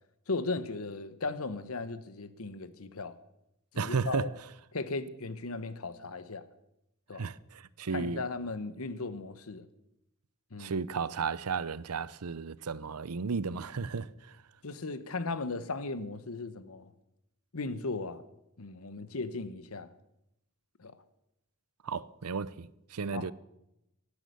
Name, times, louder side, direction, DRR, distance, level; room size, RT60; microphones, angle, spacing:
voice 1, 0.3-3.1 3.7-4.3 4.7-6.5 7.1-7.2 7.9-9.6 10.5-10.8 14.6-16.9 17.5-18.2 18.6-19.9 20.8-21.0 23.1-23.3, left 3 dB, 70° left, 1.1 m, -37 dB
voice 2, 3.8-4.3 7.1-8.2 10.6-14.4 21.8-23.3, right 5 dB, 90° right, 0.6 m, -34 dB
18.0 x 9.9 x 6.8 m
head